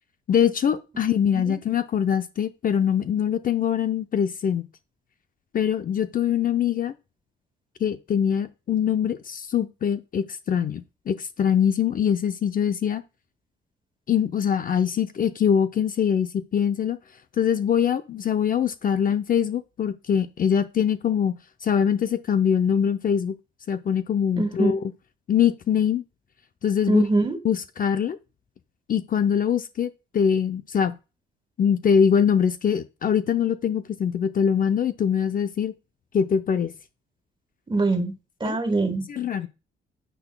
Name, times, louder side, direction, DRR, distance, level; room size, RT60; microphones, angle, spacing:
voice 1, 0.3-4.6 5.5-6.9 7.8-13.0 14.1-17.0 17.4-23.3 23.7-24.8 25.3-26.0 26.6-27.0 27.4-28.2 28.9-31.0 31.6-35.7 36.1-36.7 38.4-38.6 39.1-39.5, left 8 dB, 45° left, 0.6 m, -23 dB
voice 2, 24.4-24.7 26.9-27.4 37.7-38.1 38.4-39.0, right 2 dB, 25° right, 1.6 m, -23 dB
9.2 x 5.9 x 2.3 m
cardioid pair, 90°, 20 cm